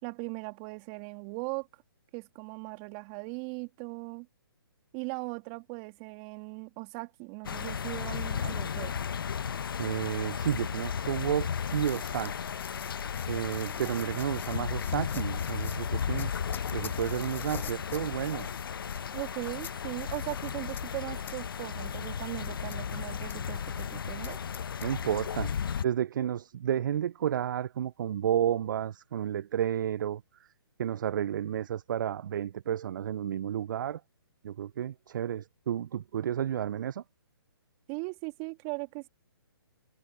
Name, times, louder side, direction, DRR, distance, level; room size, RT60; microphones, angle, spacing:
voice 1, 0.0-1.7 2.1-4.3 4.9-8.9 19.1-24.4 37.9-39.1, right 33 dB, 30° right, 2.6 m, -39 dB
sound 1, 7.4-25.8, left 7 dB, 65° left, 1.1 m, -34 dB
voice 2, 9.8-12.5 13.3-16.3 16.7-18.5 24.8-25.5 25.8-30.5 30.8-34.0 34.4-37.0, right 10 dB, 55° right, 0.3 m, -31 dB
sound 2, 11.0-25.8, left 9 dB, 15° left, 7.1 m, -49 dB
figure-of-eight pair, 140°, 13 cm